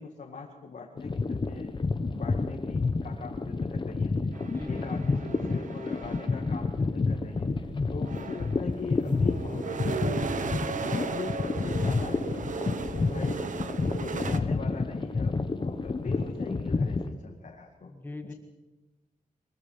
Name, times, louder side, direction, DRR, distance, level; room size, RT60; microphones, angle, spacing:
voice 1, 0.0-1.8 2.1-4.1 4.7-7.5 7.9-17.9 18.3-18.4, left 4 dB, 65° left, 0 dB, 2.2 m, -42 dB
sound 1, 1.0-17.1, left 3 dB, 35° left, 1.3 m, -29 dB
voice 2, 4.2-5.6 17.8-18.3, left 2 dB, 15° left, 6 dB, 1.9 m, -42 dB
sound 2, 4.3-6.6 7.5-7.6 7.9-14.4, right 5 dB, 65° right, 1.2 m, -36 dB
22.5 x 22.0 x 5.8 m, 1.1 s
wide cardioid pair, 130°, 14 cm